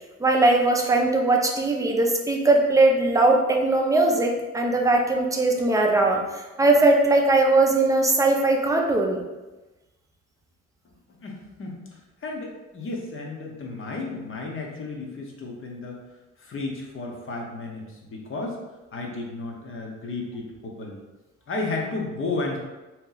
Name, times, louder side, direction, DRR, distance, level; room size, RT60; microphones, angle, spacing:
voice 1, 0.2-9.2, right 2 dB, 10° right, 1 dB, 0.5 m, -20 dB
voice 2, 11.2-11.8 12.2-16.0 16.4-18.6 18.9-21.0 21.5-22.6, left 3 dB, 45° left, 0 dB, 0.8 m, -33 dB
2.8 x 2.2 x 3.8 m, 1.1 s
cardioid pair, 90°, 30 cm